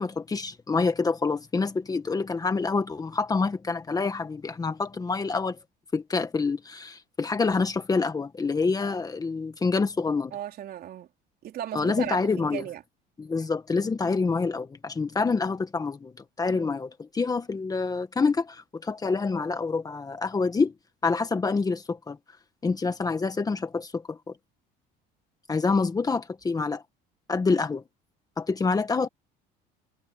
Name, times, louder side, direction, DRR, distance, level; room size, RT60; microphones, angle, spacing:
voice 1, 0.0-5.6 5.9-10.3 11.7-12.6 13.2-16.1 16.4-20.7 21.0-22.2 22.6-24.2 25.5-26.8 27.3-27.8 28.4-29.1, left 4 dB, 20° left, 1.5 m, -27 dB
voice 2, 10.3-11.1 11.4-12.8 16.5-16.7 27.5-27.6, right 11 dB, 50° right, 4.0 m, -36 dB
cardioid pair, 140°, 20 cm